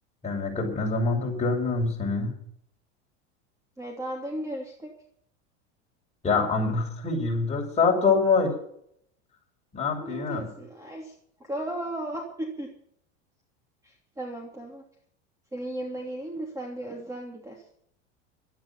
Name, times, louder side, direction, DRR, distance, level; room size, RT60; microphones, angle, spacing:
voice 1, 0.2-2.3 6.2-8.5 9.7-10.5, left 4 dB, 20° left, -1 dB, 6.7 m, -25 dB
voice 2, 3.8-4.9 10.0-11.1 11.4-12.7 13.8-14.8 15.5-17.6, right 1 dB, 10° right, 0 dB, 3.0 m, -35 dB
13.0 x 12.0 x 7.3 m, 0.68 s
supercardioid pair, 115°, 36 cm